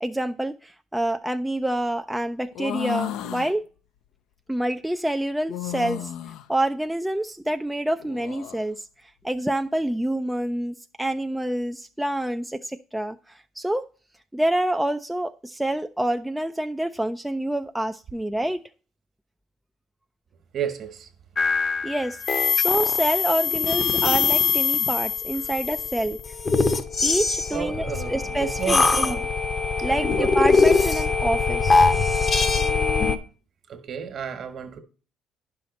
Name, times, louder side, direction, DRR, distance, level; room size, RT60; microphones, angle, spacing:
voice 1, 0.0-3.7 4.5-6.1 6.5-8.9 9.2-13.8 14.3-18.6 21.8-26.2 27.0-29.2 29.8-31.9, right 1 dB, 5° right, 0.3 m, -27 dB
sound 1, 2.5-3.5 5.5-6.5 8.0-8.6, left 13 dB, 75° left, 0.5 m, -33 dB
voice 2, 20.5-21.1 27.5-29.2 29.9-30.4 33.7-34.8, right 7 dB, 50° right, 1.3 m, -32 dB
sound 2, 21.4-33.2, left 4 dB, 30° left, 0.8 m, -22 dB
10.5 x 5.7 x 4.1 m
cardioid pair, 120°, 0 cm